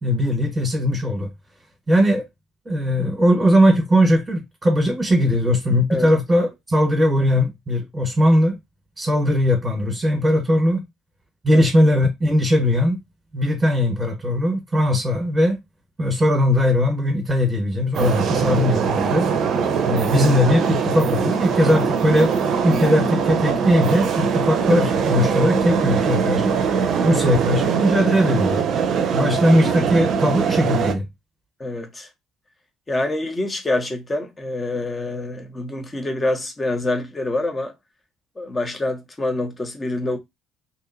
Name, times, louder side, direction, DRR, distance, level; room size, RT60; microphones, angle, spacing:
voice 1, 0.0-1.3 1.9-2.2 2.6-8.6 9.0-10.8 11.4-13.0 13.3-15.6 16.0-19.3 19.8-22.3 22.6-26.6 27.0-28.6 29.1-31.0, equal, 20° right, 1.2 m, -19 dB
sound 1, 17.9-30.9, right 6 dB, 55° right, 0.5 m, -22 dB
voice 2, 31.6-32.1 32.9-37.7 38.4-40.2, left 2 dB, 25° left, 0.9 m, -26 dB
2.7 x 2.7 x 2.6 m
figure-of-eight pair, 55°, 0 cm